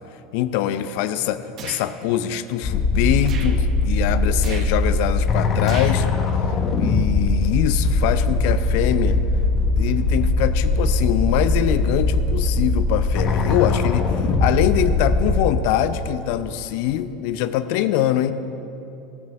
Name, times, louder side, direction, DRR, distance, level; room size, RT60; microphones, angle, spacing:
voice 1, 0.3-6.1 6.8-9.2 9.7-18.3, left 11 dB, 65° left, 12 dB, 0.5 m, -23 dB
sound 1, 1.6-1.9 3.2-3.6 4.4-4.7 5.6-6.0, right 6 dB, 45° right, 1.1 m, -36 dB
sound 2, 2.6-15.5, left 3 dB, 45° left, 1.1 m, -20 dB
15.5 x 6.1 x 6.7 m, 2.9 s
hypercardioid pair, 80°, 0 cm